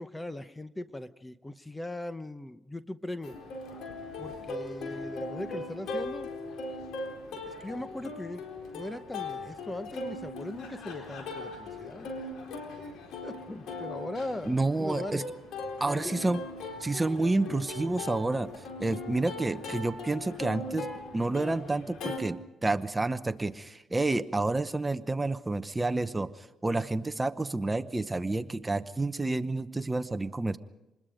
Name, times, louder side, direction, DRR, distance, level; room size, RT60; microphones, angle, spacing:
voice 1, 0.0-3.4 4.2-6.3 7.5-8.4 8.7-12.1 13.2-15.2 16.0-16.2, left 1 dB, 15° left, 12 dB, 0.9 m, -39 dB
Plucked string instrument, 3.2-22.2, left 2 dB, 80° left, 4.1 m, -39 dB
voice 2, 14.5-15.2 15.8-16.4 16.8-18.5 18.8-20.9 21.1-30.6, right 2 dB, 15° right, 11 dB, 0.9 m, -29 dB
27.0 x 21.0 x 5.1 m, 0.95 s
cardioid pair, 90°, 0 cm